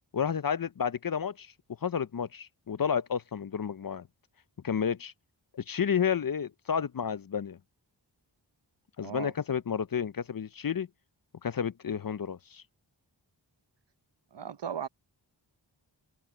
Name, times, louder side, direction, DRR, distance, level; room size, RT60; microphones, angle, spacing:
voice 1, 0.1-1.5 1.8-4.1 4.6-5.1 5.5-7.6 9.0-10.9 11.4-12.6, left 7 dB, 45° left, 0.6 m, -31 dB
voice 2, 9.0-9.3 14.3-14.9, right 8 dB, 65° right, 0.8 m, -36 dB
wide cardioid pair, 45°, 47 cm